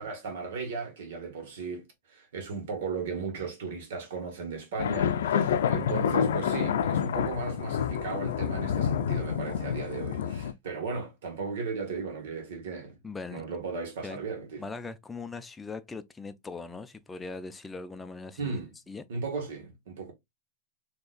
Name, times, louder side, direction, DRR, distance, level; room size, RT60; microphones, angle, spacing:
voice 1, 0.0-13.0 13.3-14.6 18.4-18.7 19.1-20.1, right 4 dB, 75° right, 1.5 m, -36 dB
sound 1, 4.8-10.5, left 8 dB, 85° left, 0.4 m, -28 dB
voice 2, 13.0-13.4 14.0-14.2 14.6-18.6 18.9-19.0, left 4 dB, 10° left, 0.4 m, -40 dB
4.1 x 2.9 x 2.3 m
supercardioid pair, 135°, 0 cm